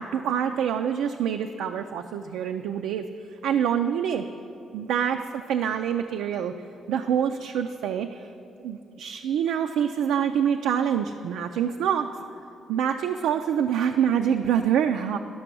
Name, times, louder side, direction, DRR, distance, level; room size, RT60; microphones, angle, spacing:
voice 1, 0.0-3.1 3.4-4.2 4.7-6.5 6.9-8.3 8.6-12.1 12.7-15.2, right 8 dB, 85° right, 6 dB, 0.3 m, -26 dB
11.5 x 5.9 x 6.1 m, 2.6 s
cardioid pair, 90°, 0 cm